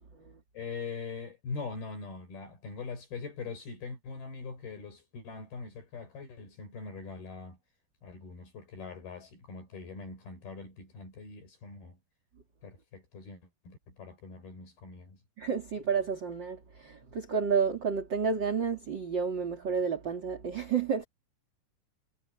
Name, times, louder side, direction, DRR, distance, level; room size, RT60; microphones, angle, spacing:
voice 1, 0.5-7.6 8.0-12.0 12.6-15.2, left 4 dB, 65° left, 6.7 m, -42 dB
voice 2, 15.4-21.0, right 6 dB, 30° right, 2.8 m, -30 dB
omnidirectional pair, 4.8 m